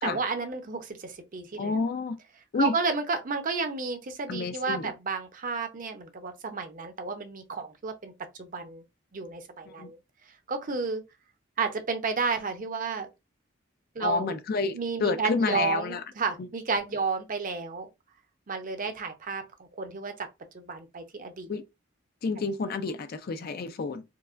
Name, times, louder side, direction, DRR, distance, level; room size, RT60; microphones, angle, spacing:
voice 1, 0.0-1.7 2.6-8.1 8.4-8.8 9.1-10.0 10.5-11.0 11.6-13.1 14.0-14.3 14.7-17.9 18.5-19.4 19.8-20.3 20.5-21.5, right 4 dB, 45° right, 0.7 m, -31 dB
voice 2, 1.6-2.2 2.5-2.7 4.3-4.9 9.7-9.9 14.0-16.0 16.4-16.5 21.5-21.6 22.2-24.0, left 4 dB, 50° left, 0.4 m, -29 dB
4.5 x 2.1 x 2.5 m
head